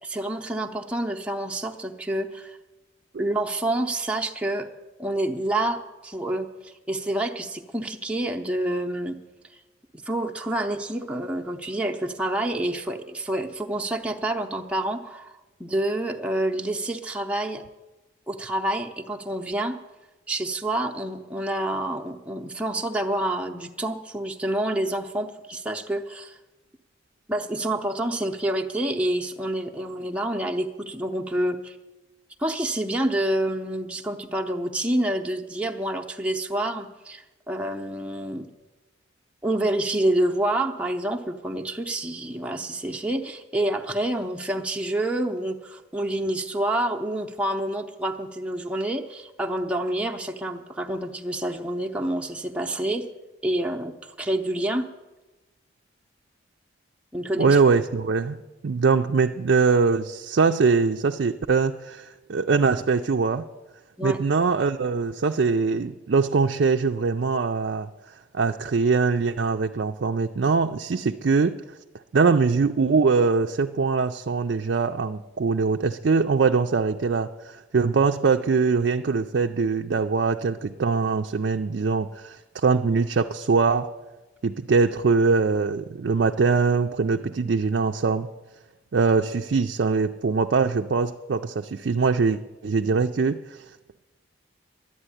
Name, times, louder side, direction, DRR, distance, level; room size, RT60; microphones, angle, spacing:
voice 1, 0.0-2.6 3.2-4.7 5.0-9.2 9.5-9.6 10.1-17.6 18.3-19.8 20.3-26.4 27.3-31.8 32.4-38.5 39.4-53.1 53.4-54.9 57.1-57.6 64.0-64.2, right 1 dB, 5° right, 2 dB, 0.6 m, -28 dB
voice 2, 57.4-63.4 64.0-67.9 68.3-71.6 72.1-83.9 84.4-88.3 88.9-93.6, right 4 dB, 65° right, 4 dB, 0.4 m, -22 dB
11.0 x 8.9 x 9.8 m, 1.1 s
head